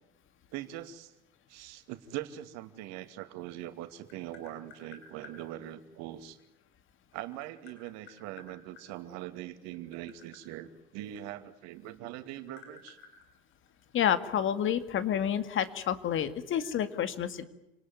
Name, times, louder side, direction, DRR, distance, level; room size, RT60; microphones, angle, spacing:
voice 1, 0.5-1.1 1.5-6.4 7.1-13.0, right 13 dB, 60° right, 9 dB, 2.5 m, -42 dB
Tap, 3.5-5.4 6.7-8.9 9.6-11.8 12.1-14.1, left 6 dB, 75° left, 6.7 m, -54 dB
voice 2, 13.9-17.4, left 9 dB, 40° left, 11 dB, 2.2 m, -29 dB
28.5 x 19.0 x 9.5 m, 0.91 s
hypercardioid pair, 90°, 30 cm